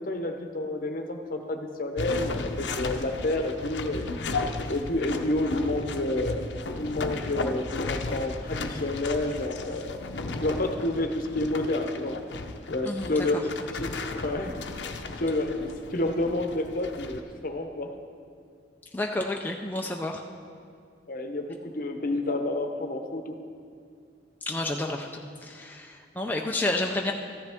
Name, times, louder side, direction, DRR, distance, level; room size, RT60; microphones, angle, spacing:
voice 1, 0.0-4.1 4.7-6.4 6.7-10.0 10.4-12.2 12.7-14.8 15.2-17.9 21.1-23.4 26.4-26.5, left 2 dB, 50° left, 5 dB, 0.8 m, -29 dB
sound 1, 2.0-17.2, left 3 dB, 80° left, 0.7 m, -35 dB
voice 2, 12.8-13.3 18.9-20.2 24.5-27.1, left 2 dB, 10° left, 1 dB, 0.4 m, -30 dB
14.0 x 11.0 x 3.5 m, 2.3 s
head